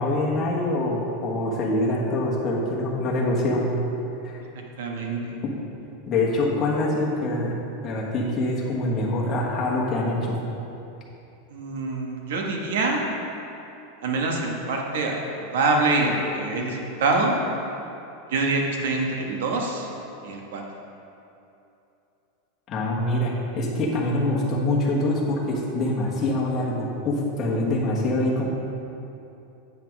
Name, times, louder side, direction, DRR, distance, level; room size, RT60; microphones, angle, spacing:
voice 1, 0.0-3.7 4.2-4.4 5.4-5.5 6.1-7.6 7.8-10.4 22.7-28.5, left 1 dB, 25° left, -4 dB, 1.3 m, -25 dB
voice 2, 4.8-5.3 11.5-13.0 14.0-17.4 18.3-19.9 20.2-20.6, right 3 dB, 75° right, 1 dB, 1.3 m, -25 dB
8.4 x 5.9 x 4.6 m, 2.8 s
supercardioid pair, 155°, 0 cm